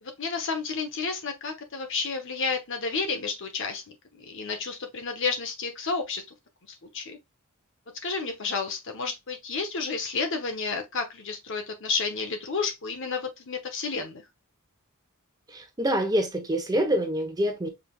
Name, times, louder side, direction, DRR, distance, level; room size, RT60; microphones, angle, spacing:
voice 1, 0.0-6.2 6.7-7.2 8.0-14.2, left 4 dB, 60° left, 1.0 m, -31 dB
voice 2, 15.5-17.7, equal, 15° right, 0.9 m, -26 dB
4.9 x 3.4 x 2.4 m
head